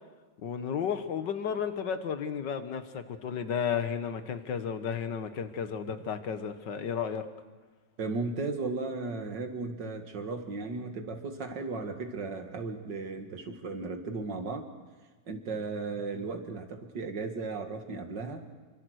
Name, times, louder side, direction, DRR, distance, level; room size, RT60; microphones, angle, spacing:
voice 1, 0.4-7.3, left 7 dB, 75° left, 9 dB, 1.9 m, -33 dB
voice 2, 8.0-14.7 15.3-18.5, right 3 dB, 80° right, 5 dB, 2.6 m, -35 dB
27.0 x 24.0 x 6.4 m, 1.3 s
omnidirectional pair, 1.9 m